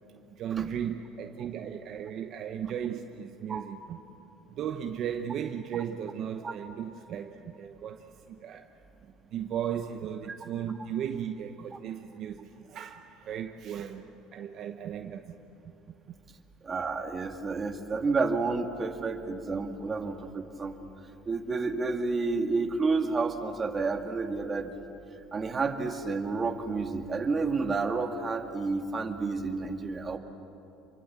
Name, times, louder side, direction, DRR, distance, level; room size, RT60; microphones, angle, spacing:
voice 1, 0.3-4.0 4.5-8.7 9.0-15.3 16.1-16.2, right 9 dB, 50° right, 1.1 m, -36 dB
voice 2, 16.6-20.7 21.2-24.7 25.3-30.2, right 4 dB, 25° right, 2.0 m, -30 dB
28.0 x 23.5 x 7.5 m
cardioid pair, 130°, 0 cm